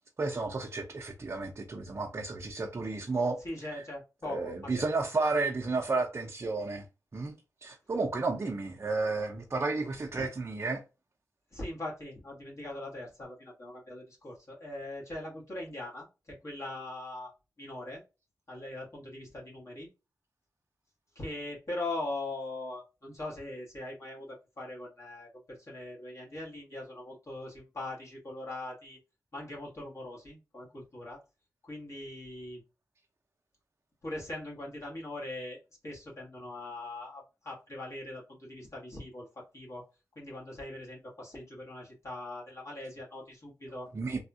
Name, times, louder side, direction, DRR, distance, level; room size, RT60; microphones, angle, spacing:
voice 1, 0.2-3.8 4.2-6.8 7.1-7.3 7.6-10.8 43.9-44.2, right 3 dB, 40° right, 0.5 m, -32 dB
voice 2, 3.4-4.8 10.2-10.3 11.5-17.3 17.6-18.0 18.5-19.9 21.1-29.0 29.3-31.2 31.6-32.6 34.0-39.8 40.1-43.9, left 2 dB, 50° left, 1.4 m, -41 dB
3.4 x 2.3 x 2.6 m
cardioid pair, 70°, 7 cm